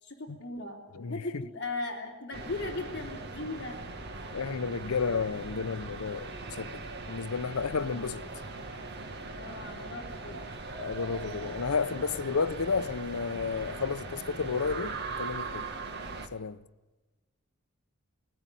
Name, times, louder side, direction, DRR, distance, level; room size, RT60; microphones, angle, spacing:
voice 1, 0.0-3.8 7.8-8.2 9.3-10.4, left 2 dB, 50° left, 3.3 m, -38 dB
voice 2, 0.9-1.4 4.3-6.8 7.1-8.2 10.7-15.7 16.3-16.6, left 5 dB, 85° left, 0.7 m, -32 dB
sound 1, 2.3-16.3, right 3 dB, 50° right, 1.8 m, -40 dB
21.5 x 17.0 x 9.1 m
head